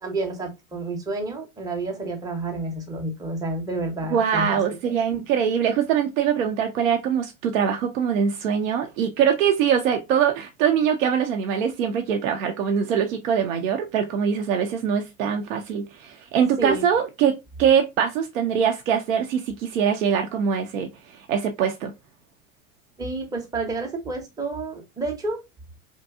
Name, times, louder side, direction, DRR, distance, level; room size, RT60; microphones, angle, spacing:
voice 1, 0.0-5.3 16.6-16.9 23.0-25.4, right 2 dB, 10° right, 0.6 m, -30 dB
voice 2, 4.1-20.9 21.3-21.9, right 7 dB, 70° right, 0.5 m, -23 dB
2.6 x 2.2 x 2.3 m
figure-of-eight pair, 80°, 41 cm